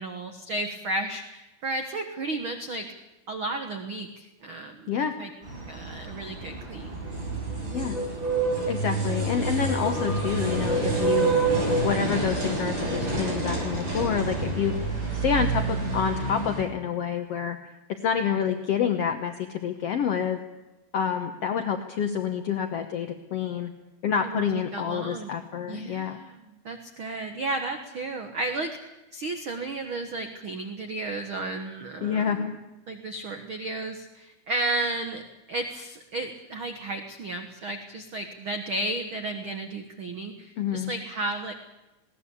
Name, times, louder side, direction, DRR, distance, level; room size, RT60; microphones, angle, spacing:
voice 1, 0.0-2.9 3.3-4.9 5.2-5.3 5.7-7.0 24.2-24.5 24.7-25.3 25.7-32.5 32.9-35.2 35.5-41.5, right 2 dB, 55° right, 6 dB, 1.4 m, -33 dB
sound 1, 5.4-16.6, right 3 dB, 30° right, 7.3 m, -28 dB
voice 2, 8.7-11.3 11.8-14.7 15.1-17.6 17.9-20.4 20.9-23.7 24.0-26.2 32.0-32.5 40.6-40.9, left 8 dB, 75° left, 6 dB, 1.4 m, -28 dB
20.0 x 18.0 x 8.4 m, 1.0 s
omnidirectional pair, 4.4 m